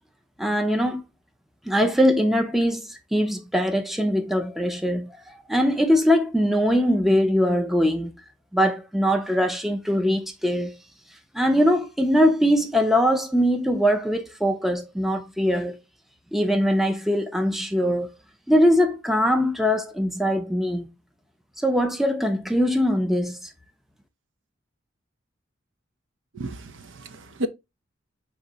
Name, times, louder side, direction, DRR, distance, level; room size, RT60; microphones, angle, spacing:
voice 1, 0.4-1.0 1.7-8.1 8.5-10.7 11.3-15.8 16.3-18.1 18.5-20.9 21.6-23.5, equal, ahead, 0.4 m, -22 dB
voice 2, 26.3-27.5, right 1 dB, 70° right, 0.5 m, -32 dB
4.4 x 2.7 x 3.8 m
head